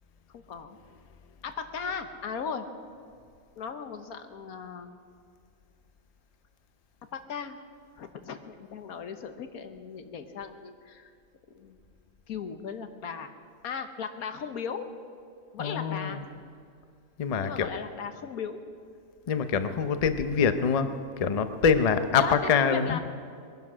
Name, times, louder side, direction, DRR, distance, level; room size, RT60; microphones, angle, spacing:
voice 1, 0.3-0.8 1.4-2.7 3.6-5.0 7.1-7.6 8.0-11.1 11.5-11.8 12.3-13.3 13.6-14.9 15.5-16.3 17.4-18.6 22.2-23.0, left 6 dB, 90° left, 8 dB, 1.5 m, -37 dB
voice 2, 15.6-16.2 17.2-17.7 19.3-23.0, left 6 dB, 40° left, 10 dB, 0.6 m, -25 dB
21.0 x 10.5 x 6.2 m, 2.3 s
omnidirectional pair, 1.5 m